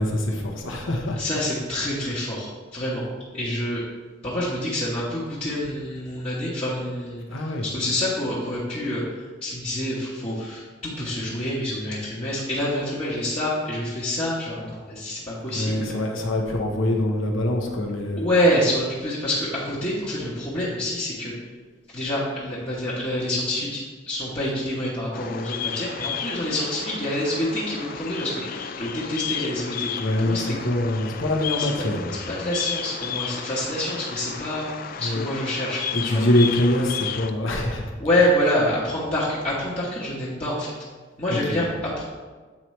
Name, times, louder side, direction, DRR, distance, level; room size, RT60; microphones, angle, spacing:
voice 1, 0.0-1.2 7.3-7.7 15.5-18.3 30.0-32.2 35.0-35.3 35.9-37.9 41.3-41.6, left 1 dB, 80° left, 1 dB, 1.0 m, -24 dB
voice 2, 1.2-3.0 3.3-3.8 4.2-7.2 7.7-15.9 18.2-21.3 21.9-29.9 30.2-30.4 31.6-31.7 32.3-34.7 35.0-36.2 38.0-40.7 41.2-42.1, left 1 dB, 30° left, -9 dB, 1.1 m, -27 dB
Bird vocalization bird call bird song, 25.1-37.3, left 8 dB, 45° left, 0.3 m, -33 dB
8.6 x 4.4 x 3.2 m, 1.4 s
head